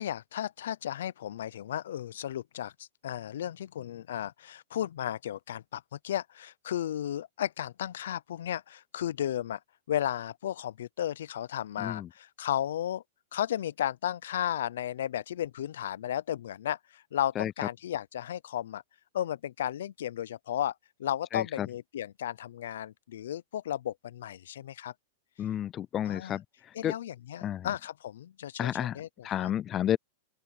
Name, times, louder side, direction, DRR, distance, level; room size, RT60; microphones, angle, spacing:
voice 1, 0.0-9.6 9.9-13.0 13.3-18.8 19.1-20.7 21.0-24.9 26.0-26.4 26.7-29.5, left 11 dB, 80° left, 0.5 m, -34 dB
voice 2, 11.8-12.1 17.4-17.5 21.3-21.7 25.4-26.4 26.8-26.9 27.4-27.7 28.6-29.0 29.2-30.0, left 11 dB, 30° left, 0.3 m, -31 dB
open air
hypercardioid pair, 135°, 0 cm